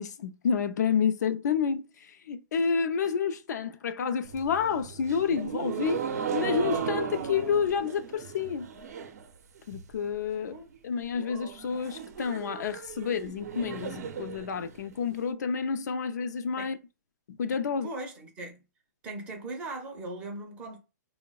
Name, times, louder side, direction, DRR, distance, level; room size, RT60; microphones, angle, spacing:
voice 1, 0.0-6.0 6.3-8.7 9.7-10.6 10.8-16.8 17.3-17.9, left 6 dB, 75° left, 0.4 m, -29 dB
sound 1, 4.2-9.3 9.6-10.1 10.4-10.5 10.7-10.8 11.1-15.1, right 7 dB, 65° right, 0.5 m, -36 dB
voice 2, 17.8-18.6 19.0-20.8, right 2 dB, 15° right, 0.4 m, -39 dB
3.3 x 2.0 x 2.3 m
hypercardioid pair, 170°, 9 cm